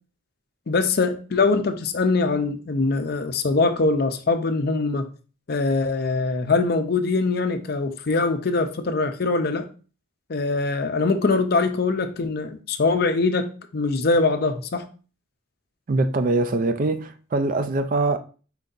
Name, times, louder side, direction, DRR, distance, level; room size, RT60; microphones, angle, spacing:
voice 1, 0.7-5.1 5.5-9.7 10.3-14.8, left 3 dB, 50° left, 0.5 m, -23 dB
voice 2, 15.9-18.2, right 2 dB, 40° right, 0.3 m, -23 dB
4.5 x 2.6 x 3.9 m
head